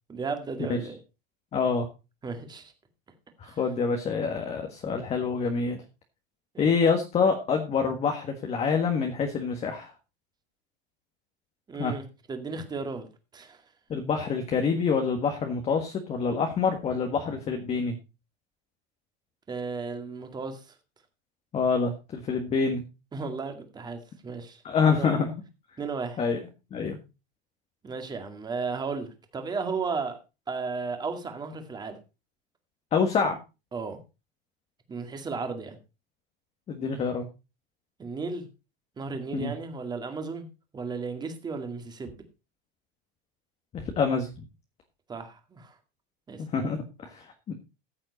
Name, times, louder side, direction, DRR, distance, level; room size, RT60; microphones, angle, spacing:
voice 1, 0.1-1.0 2.2-2.7 3.4-3.6 6.5-6.7 11.7-13.1 13.3-13.6 19.5-20.7 23.1-25.2 25.8-26.2 27.8-30.2 30.5-32.0 33.7-34.0 34.9-35.8 38.0-38.5 39.0-40.5 40.7-42.2 45.1-45.8 46.3-46.4, right 4 dB, 15° right, 2.1 m, -34 dB
voice 2, 1.5-1.9 3.4-5.8 6.6-9.9 11.8-11.9 13.9-17.9 21.5-22.8 24.6-25.3 26.2-26.4 26.7-27.0 32.9-33.4 36.7-37.3 39.3-39.5 43.7-44.3 46.4-47.5, left 5 dB, 20° left, 1.6 m, -26 dB
14.5 x 7.7 x 4.1 m
supercardioid pair, 165°, 30 cm